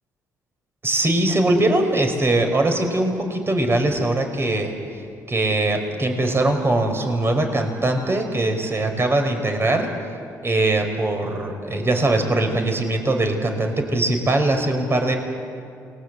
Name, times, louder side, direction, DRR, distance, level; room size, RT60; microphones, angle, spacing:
voice 1, 0.8-4.7 5.3-9.9 10.4-15.2, right 2 dB, 30° right, 4 dB, 5.1 m, -21 dB
29.0 x 21.0 x 8.3 m, 2.4 s
supercardioid pair, 60°, 8 cm